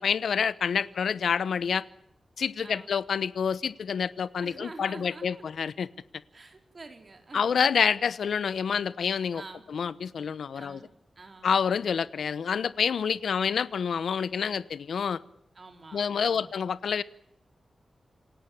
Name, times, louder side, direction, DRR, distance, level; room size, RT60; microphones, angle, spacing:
voice 1, 0.0-1.8 2.4-5.9 7.3-9.4 9.7-10.8 11.4-15.2 15.9-17.0, left 6 dB, 85° left, 17 dB, 1.0 m, -28 dB
voice 2, 4.4-5.6 6.3-7.6 9.3-9.6 10.5-11.6 13.3-13.6 14.3-14.6 15.5-16.5, right 3 dB, 35° right, 6 dB, 4.4 m, -48 dB
27.5 x 17.5 x 8.7 m, 0.74 s
wide cardioid pair, 150°, 0 cm